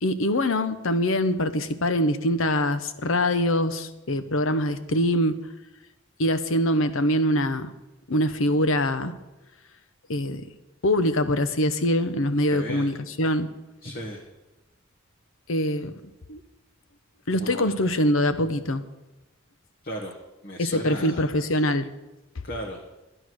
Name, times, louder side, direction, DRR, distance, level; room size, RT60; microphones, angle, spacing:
voice 1, 0.0-5.4 6.2-7.7 8.1-9.1 10.1-10.4 10.8-13.5 15.5-15.9 16.3-16.4 17.3-18.8 20.6-21.9, left 1 dB, 70° left, 11 dB, 0.9 m, -24 dB
voice 2, 12.5-12.9 13.8-14.2 17.3-17.8 19.8-20.1 20.4-21.2 22.4-22.8, equal, 45° left, 0 dB, 1.5 m, -35 dB
12.0 x 11.0 x 6.3 m, 1.0 s
head